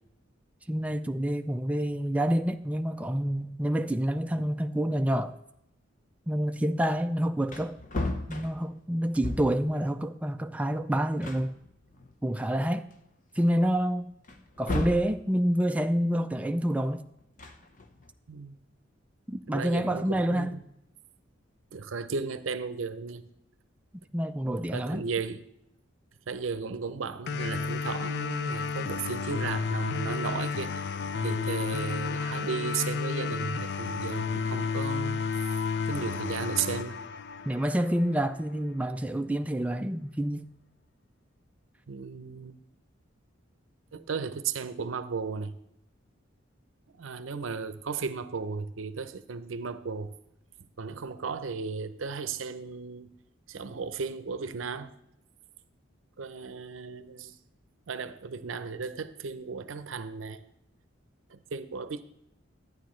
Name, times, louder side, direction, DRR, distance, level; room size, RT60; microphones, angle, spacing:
voice 1, 0.7-5.4 6.3-7.8 8.3-11.5 12.2-12.9 13.4-14.1 14.6-17.0 19.3-20.6 24.1-25.0 37.5-40.5, equal, 5° right, 0.3 m, -28 dB
Wood, 7.0-7.1 7.4-9.7 10.8-10.9 11.2-12.4 12.9-13.0 14.2-15.2 17.2-18.1, left 2 dB, 45° left, 0.9 m, -35 dB
voice 2, 19.5-20.6 21.7-23.3 24.7-25.4 26.3-30.7 31.2-35.2 35.9-37.0 41.9-42.6 43.9-45.5 46.9-50.1 50.8-53.1 53.5-54.9 56.2-57.4 57.9-60.4 61.3-62.1, right 5 dB, 90° right, 0.6 m, -35 dB
sound 1, 27.3-38.2, left 5 dB, 60° left, 0.5 m, -32 dB
11.5 x 9.2 x 3.1 m
head